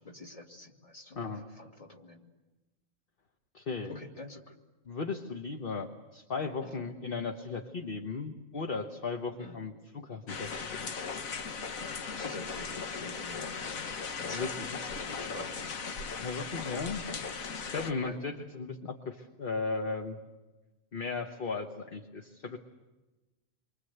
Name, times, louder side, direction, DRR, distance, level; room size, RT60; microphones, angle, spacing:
voice 1, 0.0-2.3 3.9-4.5 6.6-6.8 9.4-9.6 12.1-15.7 18.0-18.2, left 2 dB, 25° left, 2 dB, 2.4 m, -47 dB
voice 2, 3.5-3.9 4.9-10.8 14.3-14.7 16.2-17.0 17.3-20.2 20.9-22.6, left 4 dB, 45° left, 4 dB, 1.4 m, -36 dB
sound 1, 10.3-17.9, left 5 dB, 90° left, 1.6 m, -38 dB
28.5 x 24.0 x 8.0 m, 1.1 s
omnidirectional pair, 1.4 m